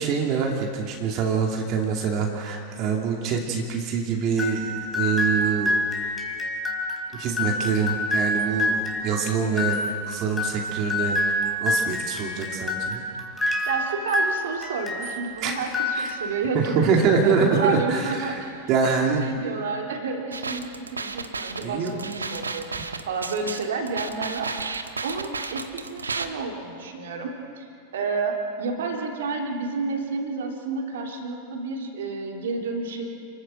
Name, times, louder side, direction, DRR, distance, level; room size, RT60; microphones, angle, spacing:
voice 1, 0.0-5.8 7.1-9.8 10.1-11.2 11.6-13.0 15.4-15.6 15.9-16.2 16.5-19.3 21.6-21.9, right 5 dB, 40° right, 1 dB, 2.8 m, -25 dB
sound 1, 4.4-15.2 15.6-16.5, left 1 dB, 15° left, 4.5 m, -27 dB
voice 2, 13.7-33.1, right 4 dB, 60° right, 2 dB, 3.5 m, -30 dB
sound 2, 20.3-26.3, right 4 dB, 75° right, 1.3 m, -32 dB
29.5 x 14.0 x 7.9 m, 2.4 s
figure-of-eight pair, 90°, 0 cm